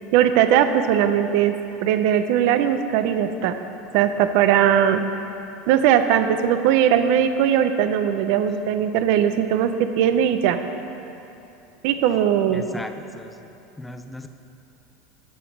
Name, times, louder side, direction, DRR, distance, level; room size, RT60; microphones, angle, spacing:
voice 1, 0.1-1.5 1.8-3.6 3.9-5.0 5.7-10.6 11.8-12.6, right 9 dB, 65° right, 9 dB, 0.5 m, -19 dB
voice 2, 12.5-13.5 13.8-14.3, left 2 dB, 5° left, 8 dB, 0.5 m, -37 dB
10.0 x 5.2 x 5.9 m, 2.9 s
supercardioid pair, 135°, 0 cm